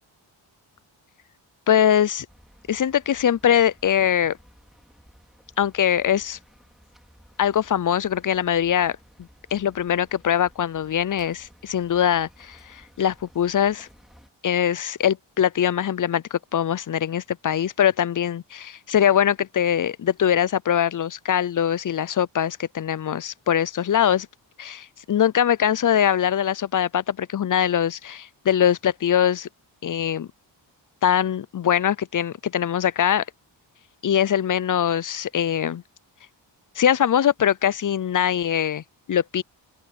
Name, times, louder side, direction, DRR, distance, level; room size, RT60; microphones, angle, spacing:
voice 1, 1.7-2.3 2.7-4.4 5.6-6.4 7.4-9.0 9.5-13.9 14.4-24.3 24.6-29.5 29.8-30.3 31.0-33.2 34.0-35.8 36.8-38.8 39.1-39.4, left 9 dB, 45° left, 0.6 m, -22 dB
sound 1, 2.3-14.3, equal, ahead, 3.0 m, -55 dB
open air
cardioid pair, 65°, 46 cm